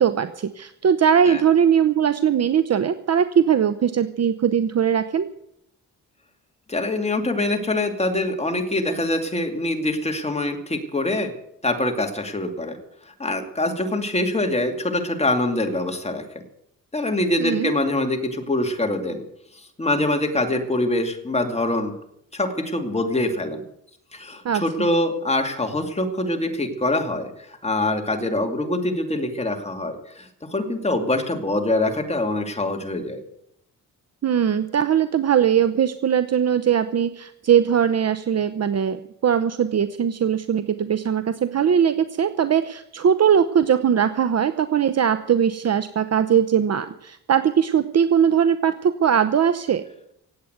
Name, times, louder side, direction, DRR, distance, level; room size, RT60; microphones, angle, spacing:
voice 1, 0.0-5.3 17.4-17.7 24.4-24.6 34.2-49.8, right 8 dB, 50° right, 12 dB, 0.8 m, -20 dB
voice 2, 6.7-11.3 11.6-12.8 13.2-16.2 16.9-19.2 19.8-21.9 22.3-23.6 24.1-27.3 27.6-33.2, left 1 dB, 20° left, 4 dB, 2.5 m, -24 dB
17.0 x 8.7 x 8.0 m, 0.77 s
cardioid pair, 80°, 34 cm